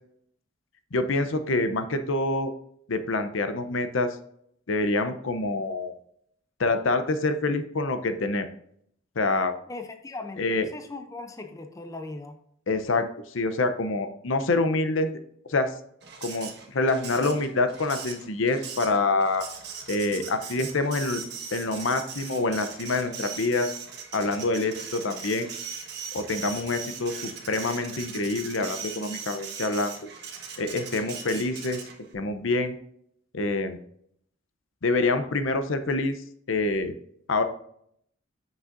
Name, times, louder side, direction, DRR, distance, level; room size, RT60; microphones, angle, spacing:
voice 1, 0.9-2.5 2.9-4.2 4.7-5.9 6.6-8.5 9.2-9.5 10.4-10.7 12.7-15.2 15.5-15.7 16.2-19.4 19.9-21.2 21.5-23.7 24.1-25.5 26.1-30.0 30.6-31.8 32.1-32.8 33.3-33.8 34.8-36.2 36.5-37.0 37.3-37.4, left 2 dB, 65° left, 9 dB, 0.7 m, -26 dB
voice 2, 9.7-12.4 20.1-20.3, left 2 dB, 15° left, 6 dB, 0.5 m, -39 dB
Printer, 16.0-32.1, right 6 dB, 55° right, 1.4 m, -39 dB
8.1 x 6.1 x 2.6 m, 0.68 s
head